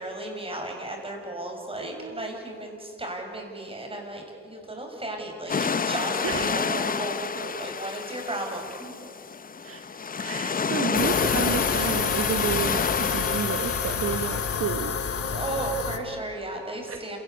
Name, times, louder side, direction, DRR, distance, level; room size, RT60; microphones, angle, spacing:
voice 1, 0.0-8.9 15.1-17.2, right 1 dB, 20° right, 1 dB, 6.9 m, -34 dB
voice 2, 1.8-2.4 6.2-6.7 9.6-15.0 16.9-17.1, right 7 dB, 50° right, 8 dB, 1.2 m, -32 dB
sound 1, 5.5-14.6, left 5 dB, 30° left, 0.8 m, -29 dB
sound 2, 10.9-16.0, left 7 dB, 50° left, 2.2 m, -28 dB
28.0 x 18.5 x 8.3 m, 2.8 s
cardioid pair, 90°, 30 cm